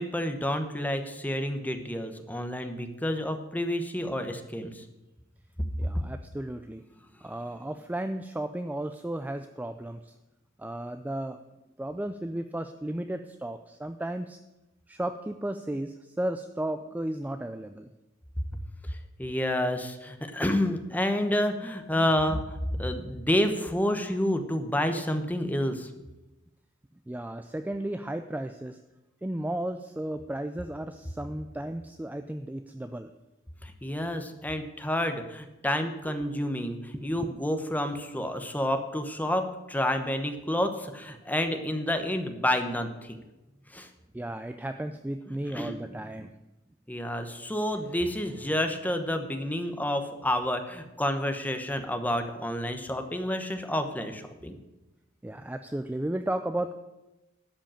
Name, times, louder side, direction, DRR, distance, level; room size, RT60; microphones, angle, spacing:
voice 1, 0.0-4.8 18.5-18.6 19.2-25.9 33.6-43.2 43.7-43.9 45.5-45.7 46.9-54.6, left 1 dB, 10° left, 7 dB, 1.0 m, -29 dB
voice 2, 5.8-6.8 7.2-10.1 10.6-11.4 11.8-14.4 14.9-17.9 27.1-28.8 29.2-33.1 36.1-36.3 36.9-37.3 44.1-46.3 55.2-56.8, right 1 dB, 10° right, 8 dB, 0.4 m, -34 dB
12.5 x 5.3 x 8.7 m, 1.0 s
head